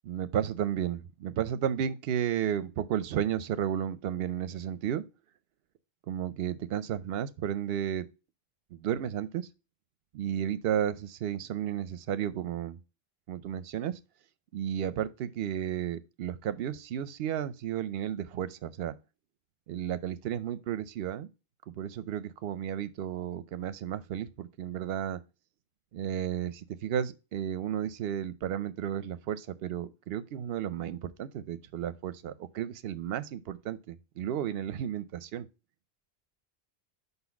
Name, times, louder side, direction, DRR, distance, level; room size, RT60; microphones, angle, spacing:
voice 1, 0.0-5.0 6.1-8.0 8.7-9.5 10.1-12.8 13.3-13.9 14.5-18.9 19.7-21.3 21.7-25.2 25.9-35.5, right 10 dB, 70° right, 0.8 m, -33 dB
5.5 x 4.1 x 5.8 m
omnidirectional pair, 1.0 m